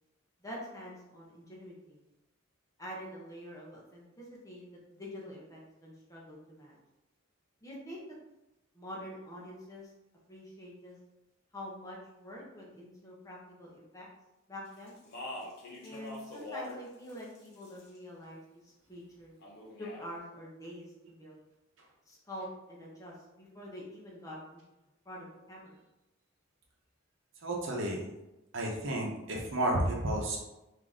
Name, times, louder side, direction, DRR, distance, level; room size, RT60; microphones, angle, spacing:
voice 1, 0.4-2.0 2.8-6.8 7.6-8.0 8.7-9.9 10.3-11.0 11.5-14.1 14.5-15.0 15.8-19.3 19.8-21.4 22.1-24.6 25.0-25.8, equal, 15° left, -4 dB, 0.8 m, -46 dB
Speech, 14.9-16.8 17.1-18.0 19.4-20.1, left 1 dB, 50° left, 0.9 m, -44 dB
voice 2, 27.4-28.1 28.5-30.4, right 1 dB, 65° right, -1 dB, 0.9 m, -31 dB
3.7 x 2.7 x 3.6 m, 0.95 s
head